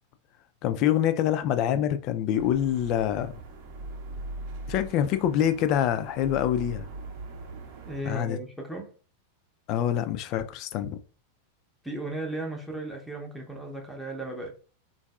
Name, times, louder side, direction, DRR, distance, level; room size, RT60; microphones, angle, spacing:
voice 1, 0.6-3.3 4.7-6.8 8.0-8.4 9.7-11.0, left 10 dB, 40° left, 0.3 m, -25 dB
sound 1, 2.4-8.0, right 2 dB, 50° right, 0.7 m, -41 dB
voice 2, 7.9-8.9 11.8-14.5, right 1 dB, ahead, 0.7 m, -35 dB
3.8 x 2.6 x 2.3 m
figure-of-eight pair, 90°, 0 cm